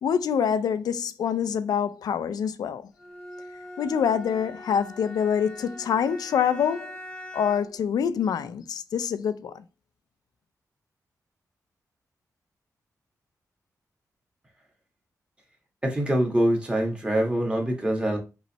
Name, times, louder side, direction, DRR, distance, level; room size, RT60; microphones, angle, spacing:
voice 1, 0.0-2.9 3.8-7.0 7.3-9.6, left 7 dB, 90° left, 0.4 m, -26 dB
Bowed string instrument, 3.0-7.8, left 1 dB, 10° left, 1.2 m, -43 dB
voice 2, 15.8-18.2, right 1 dB, 15° right, 1.5 m, -24 dB
5.3 x 3.2 x 3.0 m
wide cardioid pair, 120°, 6 cm